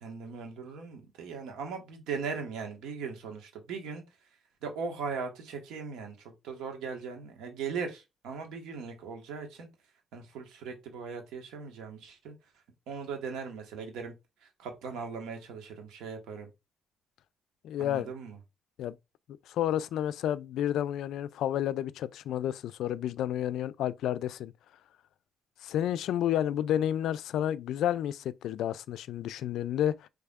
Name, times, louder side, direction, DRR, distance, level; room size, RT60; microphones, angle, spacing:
voice 1, 0.0-4.0 4.6-9.7 10.1-12.3 12.9-14.1 14.4-16.5 17.8-18.4, right 5 dB, 90° right, 1.4 m, -39 dB
voice 2, 17.6-18.1 18.8-19.0 19.5-24.5 25.6-30.1, left 11 dB, 80° left, 0.3 m, -30 dB
5.5 x 3.4 x 2.4 m
cardioid pair, 90°, 0 cm